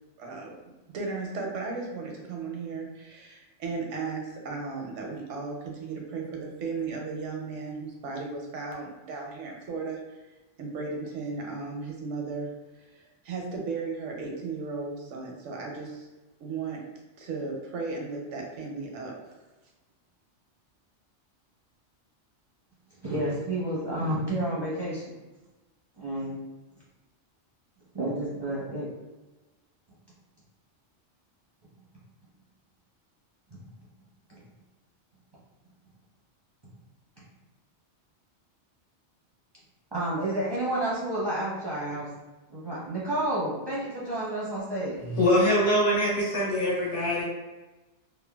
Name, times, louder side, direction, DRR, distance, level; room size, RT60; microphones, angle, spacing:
voice 1, 0.2-0.5 0.9-10.2 10.6-12.5 13.2-16.1 16.4-16.8 17.2-19.1, right 4 dB, 85° right, 0 dB, 1.0 m, -35 dB
voice 2, 23.0-25.0 26.0-26.4 27.9-28.9 39.9-42.1 42.5-45.0, right 1 dB, 35° right, -8 dB, 0.4 m, -30 dB
voice 3, 45.1-47.2, left 1 dB, 75° left, -6 dB, 1.3 m, -23 dB
3.0 x 2.1 x 2.2 m, 1.1 s
omnidirectional pair, 1.2 m